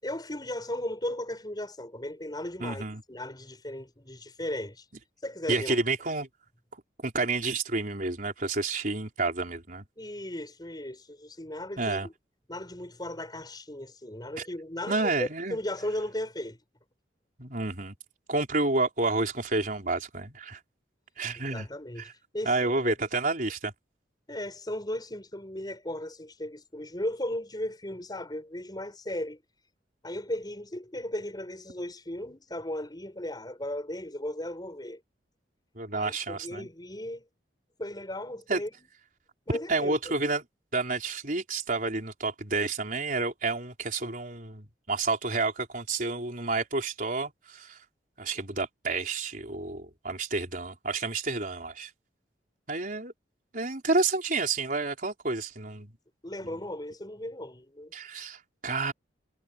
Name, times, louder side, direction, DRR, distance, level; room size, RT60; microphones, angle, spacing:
voice 1, 0.0-4.9 5.2-5.8 10.0-12.1 12.5-16.6 21.4-23.0 24.3-29.4 30.0-35.0 35.9-37.2 37.8-38.9 39.5-40.0 56.2-57.9, left 1 dB, 25° left, 6.8 m, -36 dB
voice 2, 2.6-3.0 5.5-6.3 7.0-9.8 11.8-12.1 14.4-14.5 14.9-15.6 17.4-17.9 18.3-20.6 21.2-21.7 22.0-22.1 22.4-23.7 35.8-36.7 38.5-38.6 39.7-40.4 40.7-47.8 48.2-51.9 52.7-53.1 53.5-55.9 57.9-58.9, right 3 dB, 50° right, 4.4 m, -30 dB
head